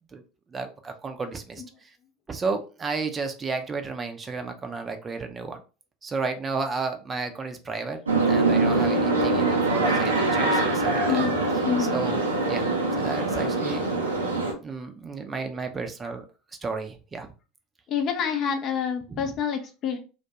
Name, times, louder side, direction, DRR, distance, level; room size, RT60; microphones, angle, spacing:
voice 1, 0.5-1.9 2.3-5.6 6.0-8.0 8.3-11.3 11.8-12.2 12.5-13.9 14.4-16.2 16.6-17.3 19.1-19.3, right 4 dB, 25° right, 6 dB, 0.5 m, -32 dB
sound 1, 8.1-14.5, right 2 dB, 85° right, 0.5 m, -23 dB
voice 2, 11.1-12.0 17.9-20.0, left 7 dB, 45° left, 6 dB, 0.5 m, -28 dB
2.2 x 2.2 x 2.6 m, 0.33 s
figure-of-eight pair, 75°, 0 cm